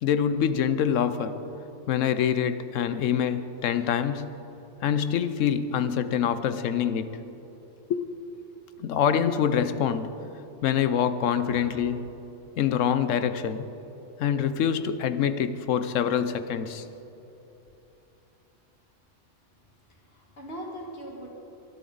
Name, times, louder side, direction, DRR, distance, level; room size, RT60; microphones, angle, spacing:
voice 1, 0.0-1.4 1.9-4.3 4.8-7.2 7.9-8.0 8.8-10.1 10.6-12.1 12.6-13.7 14.2-16.8, left 8 dB, 90° left, 12 dB, 1.1 m, -25 dB
voice 2, 20.0-21.3, equal, 55° left, -1 dB, 1.9 m, -40 dB
22.0 x 11.5 x 4.0 m, 3.0 s
omnidirectional pair, 1.3 m